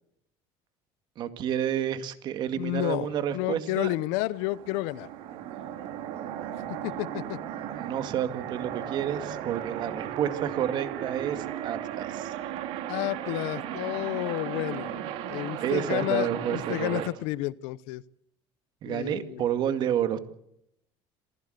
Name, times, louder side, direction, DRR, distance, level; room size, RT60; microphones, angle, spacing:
voice 1, 1.2-3.9 7.8-12.3 15.6-17.0 18.8-20.2, right 10 dB, 50° right, 10 dB, 2.1 m, -30 dB
voice 2, 2.5-3.1 3.3-5.1 6.8-7.4 12.9-15.0 15.3-18.0 18.9-19.4, left 18 dB, 90° left, 19 dB, 0.8 m, -31 dB
sound 1, 4.3-17.1, right 10 dB, 70° right, 2.8 m, -36 dB
27.0 x 16.0 x 7.9 m, 0.76 s
cardioid pair, 150°, 10 cm